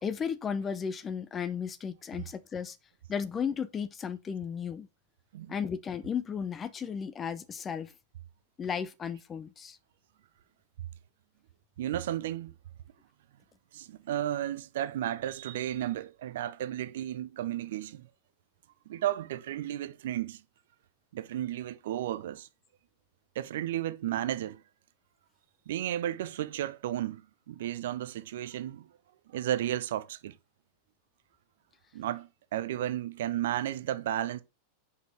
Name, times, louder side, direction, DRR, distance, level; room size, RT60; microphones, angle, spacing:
voice 1, 0.0-2.8 3.1-4.9 5.5-7.9 8.6-9.8, left 7 dB, 20° left, 0.7 m, -34 dB
voice 2, 11.8-12.5 13.7-18.1 18.9-20.4 21.1-22.5 23.3-24.6 25.7-27.2 27.5-28.9 29.3-30.4 31.9-34.4, right 12 dB, 55° right, 0.6 m, -33 dB
6.4 x 5.5 x 4.6 m
figure-of-eight pair, 90°, 0 cm